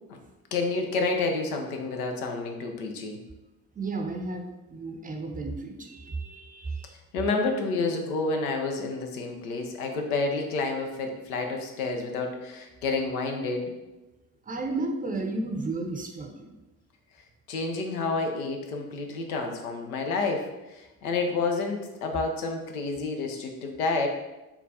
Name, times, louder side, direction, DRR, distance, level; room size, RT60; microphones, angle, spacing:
voice 1, 0.5-3.2 7.1-13.7 17.5-24.1, left 3 dB, 85° left, 3 dB, 0.6 m, -29 dB
voice 2, 3.8-6.9 14.5-16.5, right 3 dB, 20° right, 3 dB, 0.6 m, -33 dB
3.8 x 2.3 x 3.9 m, 1.0 s
hypercardioid pair, 55°, 43 cm